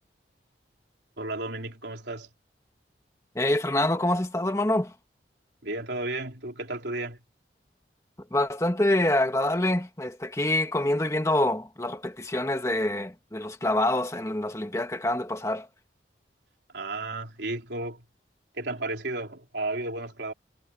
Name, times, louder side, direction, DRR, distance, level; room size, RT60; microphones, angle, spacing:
voice 1, 1.2-2.3 5.6-7.2 16.7-18.0 18.5-20.3, right 2 dB, 70° right, 3.4 m, -33 dB
voice 2, 3.3-4.9 8.3-15.7, left 1 dB, 15° left, 1.5 m, -26 dB
head